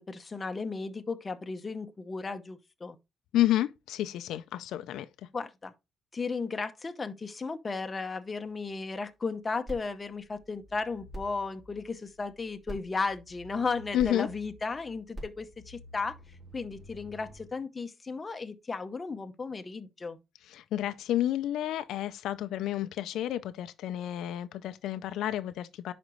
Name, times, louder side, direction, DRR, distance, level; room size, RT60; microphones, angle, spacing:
voice 1, 0.0-3.0 5.3-5.7 6.1-16.2 16.5-20.2, left 4 dB, 20° left, 0.8 m, -35 dB
voice 2, 3.3-5.1 13.9-14.3 20.5-25.9, left 13 dB, 80° left, 0.5 m, -30 dB
sound 1, 9.7-17.5, equal, 30° right, 4.2 m, -47 dB
10.5 x 5.1 x 3.1 m
cardioid pair, 135°, 0 cm